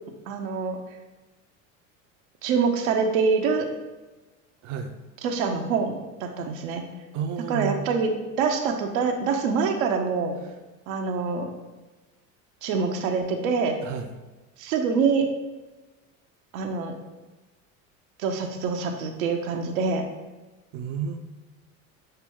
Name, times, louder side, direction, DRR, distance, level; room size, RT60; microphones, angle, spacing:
voice 1, 0.3-0.8 2.4-3.6 5.2-6.8 7.5-8.1 8.4-10.4 10.9-11.5 12.6-13.8 14.6-15.3 16.5-16.9 18.2-20.0, right 5 dB, 80° right, 3 dB, 0.7 m, -25 dB
voice 2, 4.6-4.9 7.1-7.9 13.8-14.1 20.7-21.2, right 6 dB, 45° right, 5 dB, 0.5 m, -31 dB
6.6 x 2.2 x 3.6 m, 1.2 s
hypercardioid pair, 90°, 40 cm